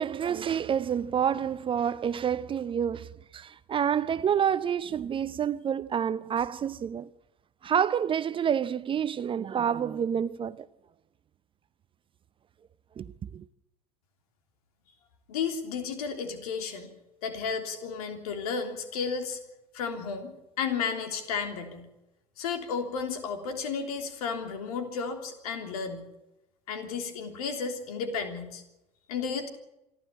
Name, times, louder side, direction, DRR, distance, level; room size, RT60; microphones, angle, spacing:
voice 1, 0.0-3.1 3.3-7.1 7.6-10.6 13.0-13.4, right 8 dB, 25° right, 0.6 m, -28 dB
voice 2, 15.3-16.9 17.2-19.4 19.7-21.9 22.4-26.1 26.7-28.6 29.1-29.5, left 5 dB, 65° left, 3.4 m, -33 dB
27.0 x 12.0 x 8.5 m
figure-of-eight pair, 75°, 21 cm